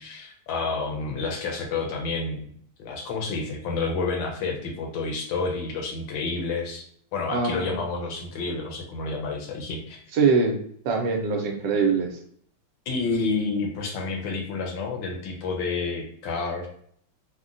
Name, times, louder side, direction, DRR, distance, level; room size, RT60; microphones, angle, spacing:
voice 1, 0.0-2.5 2.8-6.8 7.1-10.0 12.9-16.7, left 4 dB, 80° left, 2 dB, 1.4 m, -29 dB
voice 2, 7.3-7.8 10.1-10.6 10.8-12.2, right 4 dB, 75° right, 3 dB, 1.2 m, -23 dB
3.7 x 2.1 x 2.5 m, 0.63 s
omnidirectional pair, 2.0 m